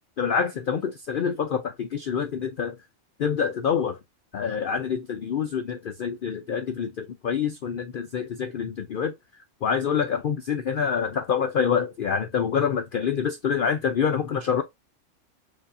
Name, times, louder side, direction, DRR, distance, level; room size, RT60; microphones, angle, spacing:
voice 1, 0.2-2.8 3.2-4.0 4.3-9.1 9.6-14.6, left 7 dB, 70° left, 0.5 m, -26 dB
4.7 x 2.7 x 2.4 m
omnidirectional pair, 1.5 m